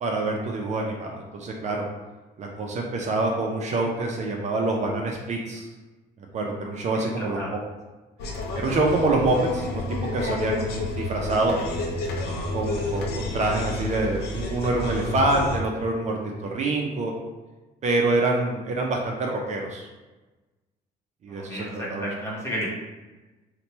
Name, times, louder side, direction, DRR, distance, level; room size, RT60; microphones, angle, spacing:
voice 1, 0.0-1.8 2.4-5.7 6.3-7.6 8.5-9.8 10.1-11.6 12.5-17.1 17.8-19.9 21.2-22.1, right 2 dB, 45° right, 0 dB, 0.5 m, -26 dB
voice 2, 7.2-7.5 21.3-22.7, equal, 15° left, -5 dB, 1.0 m, -32 dB
sound 1, 8.2-15.6, left 2 dB, 75° left, 0.6 m, -30 dB
2.8 x 2.2 x 4.1 m, 1.2 s
cardioid pair, 110°, 17 cm